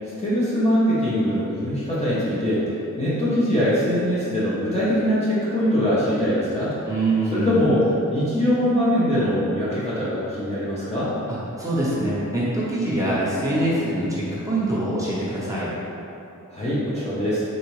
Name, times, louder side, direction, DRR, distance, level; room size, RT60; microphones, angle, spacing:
voice 1, 0.0-6.9 7.3-11.1 16.5-17.4, equal, 20° left, -11 dB, 0.5 m, -22 dB
voice 2, 6.9-7.6 11.3-15.7, right 1 dB, 10° right, -8 dB, 0.8 m, -24 dB
3.8 x 2.4 x 3.0 m, 2.7 s
wide cardioid pair, 140°, 32 cm